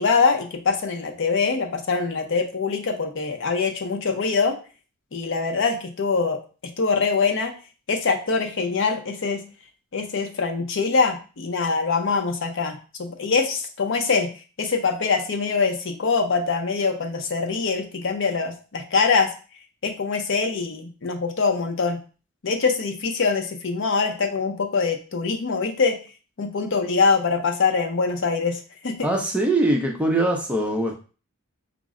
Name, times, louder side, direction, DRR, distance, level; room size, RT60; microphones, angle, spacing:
voice 1, 0.0-4.6 5.1-6.4 6.8-7.6 7.9-9.4 9.9-14.3 14.6-19.3 19.8-22.0 22.4-26.0 26.4-29.1, left 4 dB, 60° left, 5 dB, 0.6 m, -23 dB
voice 2, 29.0-30.9, right 1 dB, 5° right, 1 dB, 0.5 m, -22 dB
4.9 x 2.1 x 3.6 m, 0.36 s
head